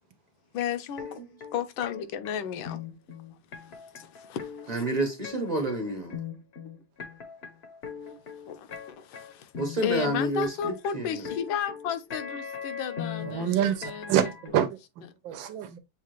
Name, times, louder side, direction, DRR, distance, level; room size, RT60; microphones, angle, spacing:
voice 1, 0.5-1.2 1.5-2.8 4.0-4.8 8.5-9.5 9.8-14.3, left 8 dB, 85° left, 1.4 m, -33 dB
sound 1, 1.0-14.5, left 7 dB, 55° left, 0.7 m, -40 dB
voice 2, 4.7-6.2 9.6-11.3, right 2 dB, 30° right, 0.8 m, -29 dB
voice 3, 13.2-15.8, right 10 dB, 75° right, 1.4 m, -27 dB
7.0 x 2.4 x 3.0 m
omnidirectional pair, 2.1 m